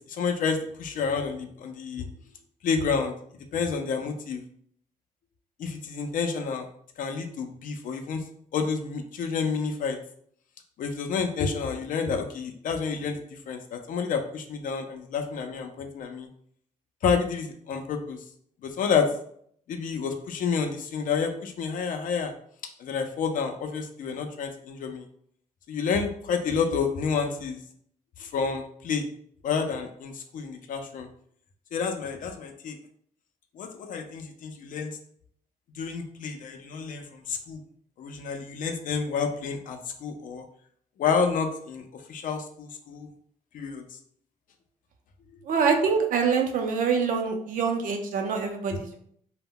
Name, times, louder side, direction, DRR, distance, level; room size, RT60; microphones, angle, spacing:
voice 1, 0.1-2.1 2.6-4.4 5.6-6.7 7.0-8.2 8.5-10.0 10.8-16.3 17.0-18.2 18.6-19.1 19.7-22.3 22.8-25.1 25.7-27.6 28.2-29.0 29.4-31.1 31.7-32.8 33.6-35.0 35.7-37.6 38.0-40.5 41.0-43.1 43.5-43.9, left 5 dB, 65° left, 5 dB, 0.5 m, -29 dB
voice 2, 45.5-49.0, right 5 dB, 70° right, 4 dB, 0.5 m, -25 dB
2.1 x 2.1 x 3.6 m, 0.64 s
cardioid pair, 85°, 15 cm